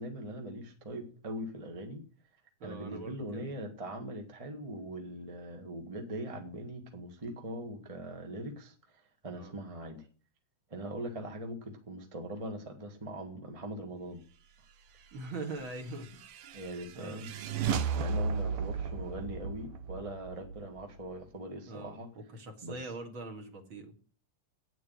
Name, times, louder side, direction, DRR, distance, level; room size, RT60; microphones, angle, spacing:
voice 1, 0.0-2.0 2.6-10.1 10.7-14.2 16.5-17.3 18.0-22.1 22.6-22.9, right 1 dB, 15° right, 3 dB, 1.1 m, -41 dB
voice 2, 2.6-3.5 9.3-9.5 15.1-16.6 16.9-17.3 21.7-23.9, right 2 dB, 45° right, 3 dB, 2.5 m, -43 dB
sound 1, 15.6-21.2, right 5 dB, 65° right, 1.4 m, -35 dB
9.3 x 8.3 x 9.4 m, 0.41 s
omnidirectional pair, 3.4 m